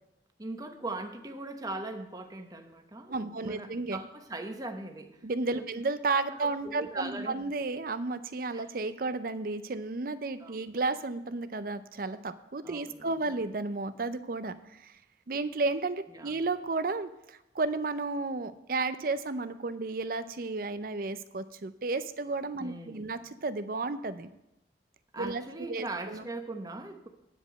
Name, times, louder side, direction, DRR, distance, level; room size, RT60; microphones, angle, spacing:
voice 1, 0.4-5.3 5.5-5.7 6.1-7.5 8.5-8.7 10.4-10.6 12.6-13.3 16.1-16.4 22.6-23.1 25.1-27.1, right 2 dB, 20° right, 5 dB, 0.9 m, -40 dB
voice 2, 3.1-4.0 5.2-15.0 15.3-24.3 25.2-26.2, right 3 dB, 50° right, 12 dB, 0.6 m, -33 dB
9.7 x 5.1 x 7.6 m, 0.87 s
head